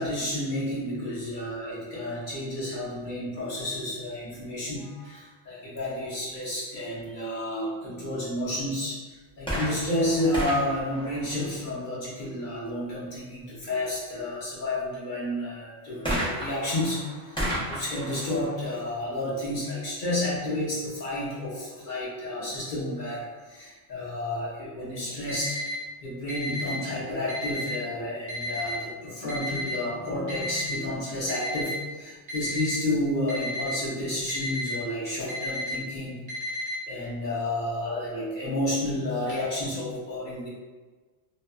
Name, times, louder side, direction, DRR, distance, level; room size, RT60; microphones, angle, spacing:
voice 1, 0.0-25.6 26.0-36.2 36.9-40.5, left 1 dB, 45° left, -7 dB, 0.9 m, -31 dB
sound 1, 9.4-12.0 16.0-19.7 20.5-20.6, equal, 10° left, 0.3 m, -34 dB
Alarm, 25.3-25.7 26.3-26.7 27.3-27.7 28.3-28.7 29.3-29.7 30.3-30.7 31.3-31.7 32.3-32.7 33.3-33.7 34.3-34.7 35.3-35.7 36.3-36.7, equal, 50° right, 0.7 m, -33 dB
2.6 x 2.3 x 2.3 m, 1.3 s
omnidirectional pair, 1.3 m